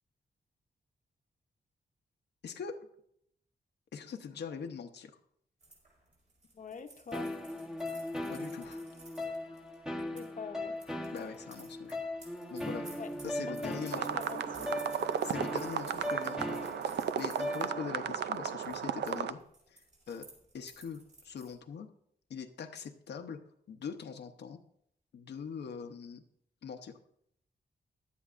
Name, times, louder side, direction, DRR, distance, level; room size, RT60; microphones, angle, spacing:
voice 1, 2.4-2.9 3.9-5.2 8.3-8.8 11.1-12.0 12.5-12.9 13.2-14.2 15.0-20.3 20.5-21.9 22.3-23.4 23.7-24.6 25.1-26.2 26.6-27.0, left 6 dB, 90° left, 5 dB, 0.8 m, -42 dB
sound 1, 5.6-10.3 10.8-17.6 18.1-18.4 18.6-19.1 19.4-21.5, right 2 dB, 45° right, 5.5 m, -55 dB
voice 2, 6.5-7.3 10.1-10.7 13.0-13.1 13.5-14.7, left 5 dB, 50° left, 5 dB, 0.9 m, -44 dB
sound 2, 7.1-18.1, left 1 dB, 5° right, 1.1 m, -39 dB
sound 3, 13.9-19.3, right 8 dB, 85° right, 0.5 m, -35 dB
16.5 x 11.5 x 2.5 m, 0.71 s
wide cardioid pair, 160°, 17 cm